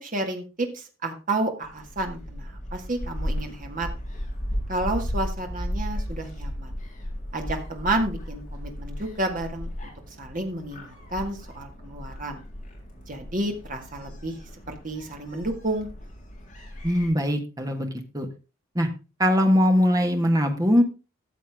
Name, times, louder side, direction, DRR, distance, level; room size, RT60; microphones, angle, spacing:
voice 1, 0.0-3.9 4.7-6.7 7.3-9.7 10.2-12.4 13.1-14.3 14.7-15.9, right 2 dB, 35° right, 3 dB, 1.9 m, -30 dB
Gull seagull, 1.6-17.1, equal, 35° left, 3.7 m, -35 dB
voice 2, 16.8-18.3 18.7-18.9 19.2-20.8, equal, 15° right, 5 dB, 1.5 m, -21 dB
14.0 x 7.1 x 3.6 m, 0.31 s
head